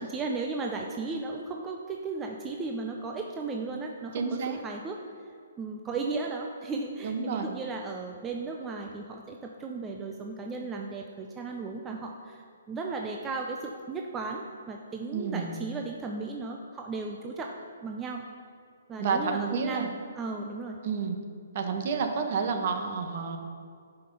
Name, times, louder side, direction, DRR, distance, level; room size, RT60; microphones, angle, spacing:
voice 1, 0.0-5.0 5.6-17.5 17.8-18.2 18.9-20.8, right 3 dB, 15° right, 1 dB, 0.6 m, -35 dB
voice 2, 4.1-4.6 7.0-7.5 15.1-15.6 19.0-19.9 20.8-21.2 21.5-23.4, right 5 dB, 45° right, 5 dB, 1.3 m, -30 dB
11.0 x 5.7 x 5.4 m, 2.3 s
hypercardioid pair, 140°, 0 cm